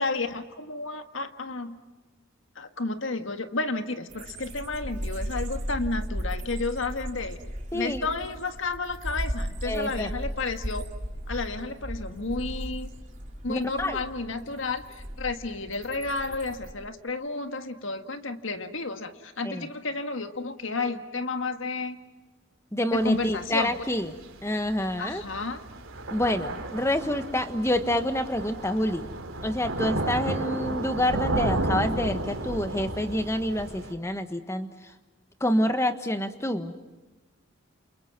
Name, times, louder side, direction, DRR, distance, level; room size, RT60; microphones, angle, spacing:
voice 1, 0.0-1.8 2.6-7.4 7.7-10.9 11.3-12.9 13.4-22.0 22.9-23.8 25.0-25.6, left 3 dB, 75° left, 8 dB, 1.8 m, -32 dB
sound 1, 4.1-16.7, equal, 40° right, 3.8 m, -36 dB
voice 2, 9.7-10.1 13.5-14.0 19.5-19.6 22.7-24.1 24.4-25.2 26.1-29.1 29.4-34.7 35.4-36.7, left 1 dB, 15° left, 9 dB, 1.4 m, -27 dB
Thunder / Rain, 22.9-33.9, right 2 dB, 85° right, 3.4 m, -33 dB
29.5 x 28.5 x 6.0 m, 1.2 s
head